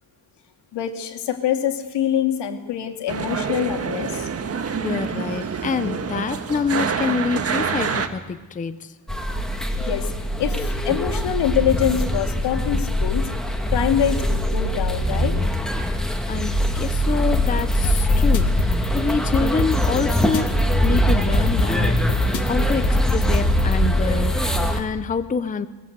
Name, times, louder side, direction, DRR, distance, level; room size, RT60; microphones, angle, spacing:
voice 1, 0.7-4.3 9.8-10.1 10.4-13.3 13.7-15.4, left 10 dB, 75° left, 5 dB, 2.5 m, -24 dB
sound 1, 3.1-8.1, right 6 dB, 35° right, 1.5 m, -26 dB
voice 2, 4.8-8.9 16.3-22.0 22.5-25.7, left 5 dB, 20° left, 11 dB, 0.7 m, -26 dB
sound 2, 9.1-24.8, equal, ahead, 1.9 m, -22 dB
sound 3, 17.2-23.8, left 3 dB, 45° left, 1.9 m, -27 dB
22.0 x 21.0 x 8.0 m, 1.2 s
cardioid pair, 165°, 42 cm